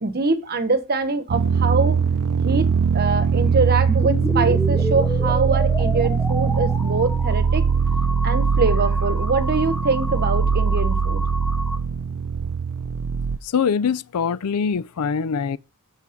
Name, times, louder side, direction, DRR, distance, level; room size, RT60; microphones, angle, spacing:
voice 1, 0.0-2.0 2.4-7.7 8.2-11.2, right 3 dB, 45° right, 1.1 m, -24 dB
sound 1, 1.3-13.4, right 6 dB, 70° right, 0.5 m, -21 dB
sound 2, 3.9-11.8, left 1 dB, 5° left, 0.8 m, -31 dB
voice 2, 13.4-15.6, left 6 dB, 85° left, 0.5 m, -23 dB
8.5 x 6.1 x 5.1 m
head